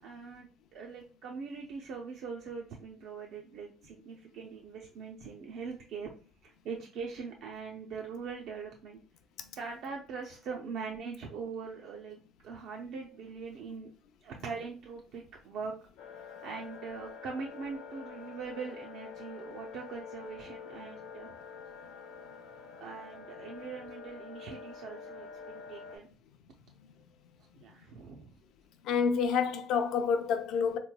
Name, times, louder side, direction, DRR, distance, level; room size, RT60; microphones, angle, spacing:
voice 1, 0.0-6.1 6.4-9.0 9.6-13.9 14.2-15.7 16.0-16.1 16.4-21.3 22.8-26.1 27.6-28.4, right 5 dB, 55° right, 0.4 m, -42 dB
sound 1, 16.0-26.0, left 6 dB, 80° left, 0.9 m, -47 dB
voice 2, 28.8-30.8, left 6 dB, 55° left, 0.5 m, -28 dB
3.8 x 3.0 x 2.2 m
cardioid pair, 170°, 0 cm